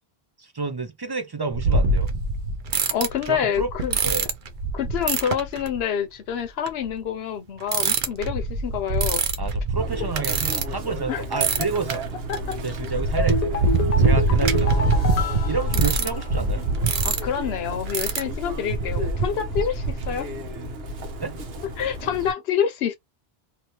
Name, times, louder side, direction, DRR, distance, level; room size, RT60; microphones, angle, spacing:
voice 1, 0.4-2.1 3.3-3.7 4.0-4.3 9.4-12.0 12.6-13.5 14.0-15.0 15.5-16.7 21.2-21.4, right 4 dB, 40° right, 0.4 m, -29 dB
sound 1, 1.5-5.8 6.7-6.8 7.7-11.0 11.3-20.2, right 4 dB, 60° right, 0.7 m, -24 dB
voice 2, 2.9-3.9 4.7-9.2 11.1-11.2 12.3-12.6 17.0-20.3 21.8-23.0, left 8 dB, 80° left, 0.9 m, -27 dB
Chirp tweet, 9.8-22.3, right 1 dB, 75° right, 1.1 m, -34 dB
sound 2, 13.2-16.6 16.9-17.0, left 3 dB, 45° left, 0.7 m, -28 dB
2.9 x 2.7 x 2.7 m
omnidirectional pair, 1.0 m